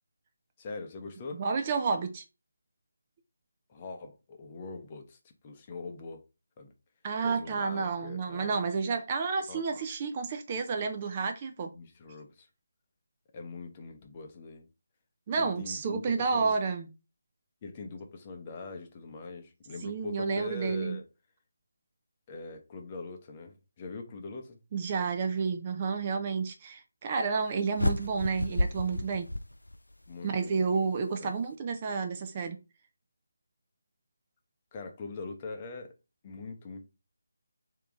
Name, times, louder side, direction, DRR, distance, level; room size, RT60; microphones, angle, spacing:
voice 1, 0.6-1.4 3.7-5.2 5.4-6.2 6.6-6.7 7.2-8.6 9.5-9.6 11.7-12.5 13.3-14.7 15.4-16.5 17.6-21.0 22.3-24.6 30.1-30.6 31.2-31.3 34.7-35.9 36.2-36.9, left 3 dB, 25° left, 0.7 m, -42 dB
voice 2, 1.3-2.2 7.0-11.7 15.3-16.9 19.8-21.0 24.7-29.3 30.2-32.6, right 5 dB, 25° right, 0.5 m, -30 dB
sound 1, 27.8-30.1, left 1 dB, 80° left, 0.4 m, -31 dB
3.5 x 2.9 x 3.6 m
figure-of-eight pair, 155°, 0 cm